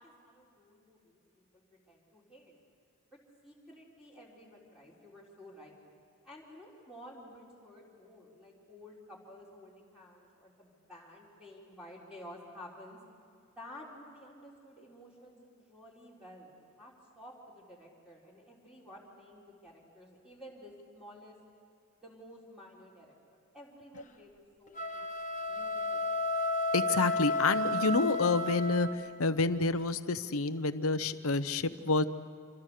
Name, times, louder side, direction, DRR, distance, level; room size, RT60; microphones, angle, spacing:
voice 1, 0.0-2.5 3.4-5.8 6.2-13.0 13.6-21.4 22.0-24.8 25.3-26.1, left 1 dB, 5° right, -5 dB, 3.9 m, -52 dB
sound 1, 24.7-29.2, left 2 dB, 35° left, 1.2 m, -32 dB
voice 2, 26.7-32.0, left 3 dB, 75° left, 12 dB, 0.9 m, -29 dB
27.0 x 26.5 x 6.7 m, 2.4 s
head